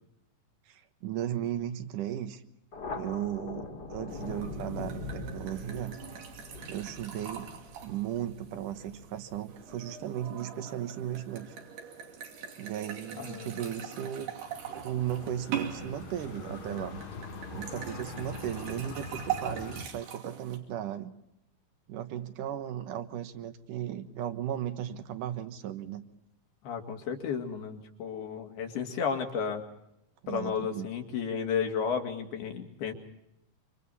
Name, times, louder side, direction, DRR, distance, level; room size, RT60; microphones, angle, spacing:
voice 1, 0.7-2.4 3.0-6.0 6.7-7.5 7.8-11.6 12.6-14.3 14.7-17.0 17.5-21.1 21.9-26.1 30.2-30.9, right 11 dB, 65° right, 10 dB, 2.5 m, -36 dB
Thunder, 2.7-9.8, left 2 dB, 35° left, 2.0 m, -42 dB
sound 1, 4.1-20.6, right 9 dB, 85° right, 4.8 m, -42 dB
voice 2, 13.2-13.9 26.6-29.6 30.3-32.9, left 6 dB, 75° left, 4 dB, 4.1 m, -33 dB
sound 2, 14.4-19.9, left 4 dB, 55° left, 2.8 m, -43 dB
27.0 x 25.5 x 4.2 m, 0.82 s
omnidirectional pair, 4.4 m